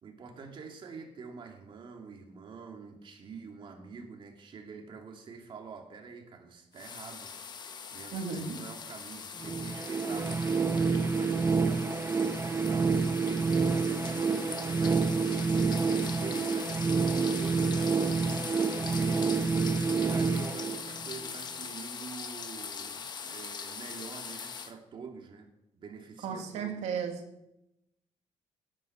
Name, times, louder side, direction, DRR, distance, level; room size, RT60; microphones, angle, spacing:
voice 1, 0.0-7.3 7.9-15.2 15.5-16.7 17.1-19.6 19.9-26.9, right 5 dB, 45° right, 3 dB, 2.6 m, -46 dB
sound 1, 6.7-24.7, left 6 dB, 40° left, 1.3 m, -41 dB
voice 2, 8.1-8.6 26.2-27.2, right 6 dB, 75° right, 4 dB, 2.6 m, -34 dB
sound 2, 9.4-21.3, right 5 dB, 25° right, 0.6 m, -28 dB
17.0 x 10.0 x 5.8 m, 0.88 s
cardioid pair, 135°, 11 cm